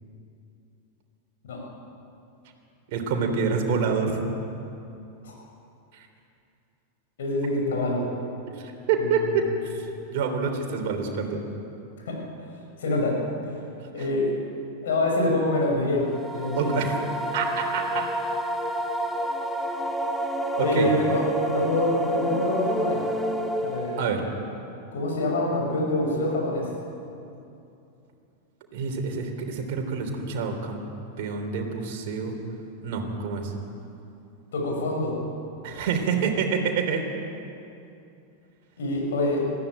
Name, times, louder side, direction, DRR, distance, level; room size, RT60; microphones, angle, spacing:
voice 1, 2.9-4.2 8.6-9.5 9.8-11.4 14.0-14.1 16.5-16.9 17.3-18.1 20.6-20.9 24.0-24.2 28.7-30.8 31.2-32.4 32.8-33.5 35.6-37.1, right 5 dB, 50° right, 3 dB, 3.5 m, -27 dB
voice 2, 7.2-8.1 12.1-12.5 12.8-13.5 13.9-14.3 14.8-16.0 16.3-16.9 20.6-23.0 23.6-24.0 24.9-26.7 34.5-35.2 38.8-39.5, left 1 dB, 60° left, -1 dB, 6.2 m, -26 dB
sound 1, 16.1-24.2, right 1 dB, ahead, 1.5 m, -29 dB
20.0 x 15.0 x 9.0 m, 2.7 s
figure-of-eight pair, 90°, 0 cm